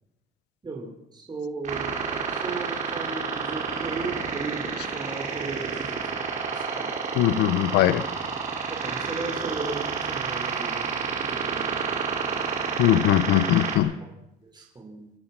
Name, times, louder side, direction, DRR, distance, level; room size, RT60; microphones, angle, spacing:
voice 1, 0.6-7.0 8.7-12.4 14.0-14.1 14.4-15.1, right 3 dB, 25° right, 1 dB, 5.1 m, -37 dB
sound 1, 1.6-13.8, right 5 dB, 45° right, 5.4 m, -30 dB
voice 2, 7.2-8.1 12.8-14.0, left 13 dB, 90° left, 17 dB, 1.0 m, -20 dB
28.5 x 14.5 x 6.2 m, 0.84 s
cardioid pair, 110°, 17 cm